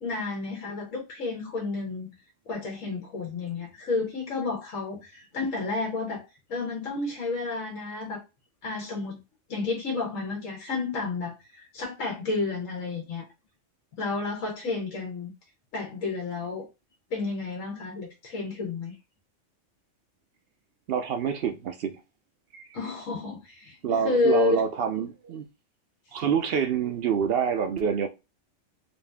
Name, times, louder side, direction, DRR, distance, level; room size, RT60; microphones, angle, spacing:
voice 1, 0.0-2.1 2.4-8.2 8.6-9.2 9.5-13.2 14.0-15.3 15.7-16.7 17.1-18.9 22.7-24.6, left 3 dB, 85° left, 1.5 m, -31 dB
voice 2, 20.9-22.0 22.5-22.6 23.8-25.4 26.1-28.1, right 7 dB, 60° right, 0.7 m, -27 dB
4.1 x 2.7 x 3.4 m
omnidirectional pair, 1.3 m